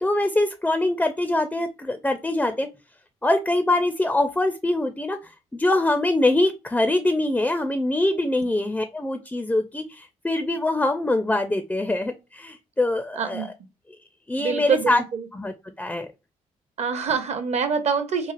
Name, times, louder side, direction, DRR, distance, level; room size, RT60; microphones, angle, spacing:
voice 1, 0.0-2.7 3.2-5.2 5.5-13.5 14.3-15.0 15.3-16.1, left 2 dB, 10° left, 0.4 m, -23 dB
voice 2, 13.1-13.5 14.4-15.3 16.8-18.3, right 6 dB, 45° right, 0.6 m, -25 dB
3.1 x 2.3 x 2.4 m
hypercardioid pair, 45°, 16 cm